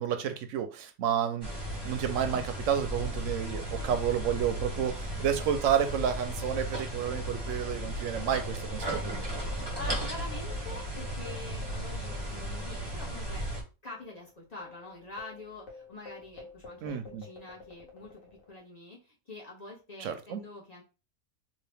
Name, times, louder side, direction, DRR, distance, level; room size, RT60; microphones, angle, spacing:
voice 1, 0.0-1.5 1.8-9.3 16.8-17.3 20.0-20.4, right 9 dB, 70° right, 8 dB, 0.9 m, -30 dB
sound 1, 1.4-13.6, equal, 20° right, 1.0 m, -35 dB
sound 2, 8.0-12.8 13.1-13.2 13.8-18.6, left 3 dB, 70° left, 1.4 m, -49 dB
voice 2, 9.4-13.4 13.8-18.2 18.5-20.8, left 2 dB, 35° left, -4 dB, 0.9 m, -45 dB
2.8 x 2.8 x 3.3 m, 0.31 s
omnidirectional pair, 1.5 m